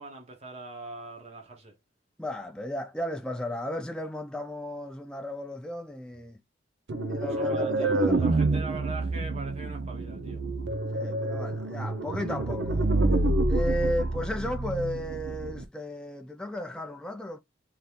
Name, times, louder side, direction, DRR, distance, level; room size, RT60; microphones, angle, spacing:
voice 1, 0.0-1.7 7.2-10.4, right 3 dB, 35° right, 1.0 m, -41 dB
voice 2, 2.2-6.4 7.1-8.8 10.9-12.8 13.5-17.4, left 1 dB, 5° left, 0.3 m, -35 dB
sound 1, 6.9-15.6, right 2 dB, 65° right, 0.6 m, -28 dB
3.7 x 2.9 x 3.1 m
head